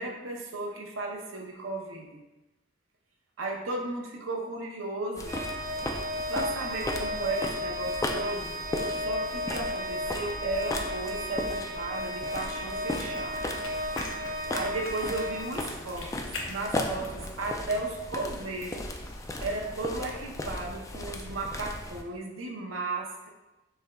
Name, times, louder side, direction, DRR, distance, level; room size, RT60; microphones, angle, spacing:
voice 1, 0.0-2.2 3.4-5.3 6.3-8.6 9.0-13.5 14.5-18.9 19.4-23.3, right 2 dB, 85° right, 0 dB, 0.6 m, -35 dB
sound 1, 5.2-22.0, left 1 dB, 15° left, 0.3 m, -37 dB
Organ, 5.3-16.1, equal, 45° right, 0.5 m, -34 dB
domesticcat eats wet food, 13.0-20.4, left 2 dB, 75° left, 0.8 m, -46 dB
6.5 x 3.5 x 2.3 m, 1.0 s
head